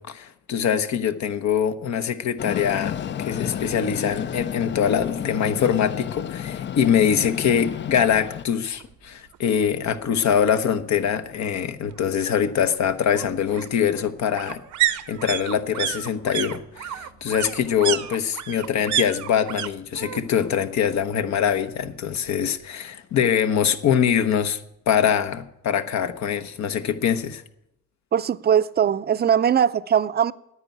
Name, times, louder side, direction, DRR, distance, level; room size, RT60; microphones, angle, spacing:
voice 1, 0.0-27.4, left 8 dB, 65° left, 1.0 m, -23 dB
Train, 2.4-8.5, left 9 dB, 40° left, 0.4 m, -31 dB
sound 1, 8.8-8.9 9.3-9.4 9.6-10.6 11.9-19.7 19.9-20.5 20.8-21.8 22.1-22.2, right 12 dB, 70° right, 0.8 m, -30 dB
voice 2, 28.1-30.3, right 8 dB, 35° right, 0.5 m, -20 dB
9.7 x 9.4 x 9.5 m
cardioid pair, 90°, 30 cm